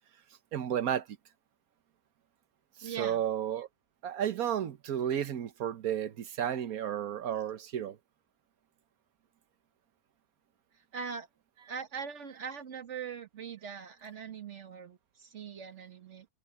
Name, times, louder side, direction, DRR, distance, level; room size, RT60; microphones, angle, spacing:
voice 1, 0.5-1.1 2.8-3.7 4.0-8.0, right 10 dB, 75° right, 1.4 m, -32 dB
voice 2, 2.8-3.2 10.9-11.3 11.7-16.3, right 6 dB, 55° right, 1.6 m, -41 dB
omnidirectional pair, 1.5 m